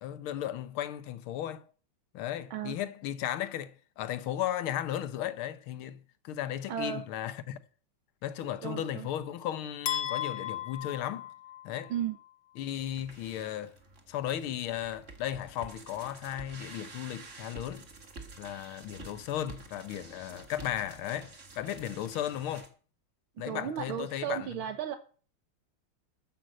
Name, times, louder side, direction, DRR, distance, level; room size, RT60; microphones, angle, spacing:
voice 1, 0.0-1.6 2.1-7.6 8.2-11.3 11.7-11.9 12.6-13.7 14.1-17.9 18.4-22.7 23.4-24.5, left 11 dB, 80° left, 1.7 m, -35 dB
voice 2, 6.7-7.0 8.6-9.1 11.9-12.2 23.5-25.0, right 9 dB, 75° right, 1.8 m, -34 dB
sound 1, 9.9-12.0, left 11 dB, 60° left, 1.4 m, -35 dB
sound 2, 12.7-22.7, right 3 dB, 35° right, 2.0 m, -50 dB
13.0 x 5.6 x 7.5 m
omnidirectional pair, 2.3 m